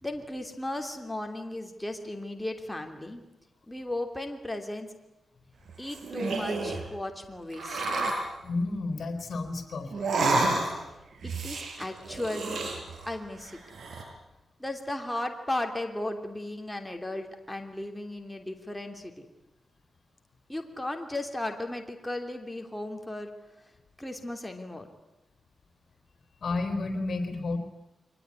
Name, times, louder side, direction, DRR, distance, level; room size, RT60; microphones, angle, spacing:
voice 1, 0.0-3.2 3.7-4.9 5.8-7.9 11.2-12.6 13.1-13.6 14.6-19.3 20.5-23.3 24.0-24.9, left 1 dB, 10° left, 4 dB, 3.0 m, -35 dB
sound 1, 5.7-6.9 7.5-8.3 9.9-10.9 11.2-13.1 13.5-14.0, right 2 dB, 75° right, 6.0 m, -30 dB
voice 2, 8.4-10.1 26.4-27.6, left 3 dB, 65° left, 9 dB, 3.9 m, -31 dB
24.0 x 20.0 x 9.7 m, 0.98 s
cardioid pair, 75°, 0 cm